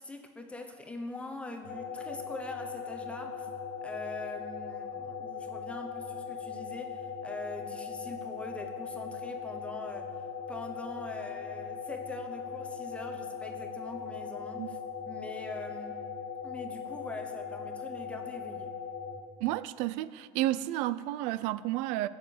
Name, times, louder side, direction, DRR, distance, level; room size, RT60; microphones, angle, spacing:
voice 1, 0.0-3.5 3.8-10.2 10.5-14.8 15.1-16.0 16.4-18.7, left 2 dB, 10° left, 4 dB, 0.9 m, -43 dB
sound 1, 1.6-19.2, left 6 dB, 55° left, 1.3 m, -39 dB
voice 2, 19.4-22.1, right 15 dB, 75° right, 16 dB, 0.5 m, -31 dB
15.5 x 7.2 x 7.9 m, 2.1 s
cardioid pair, 155°, 13 cm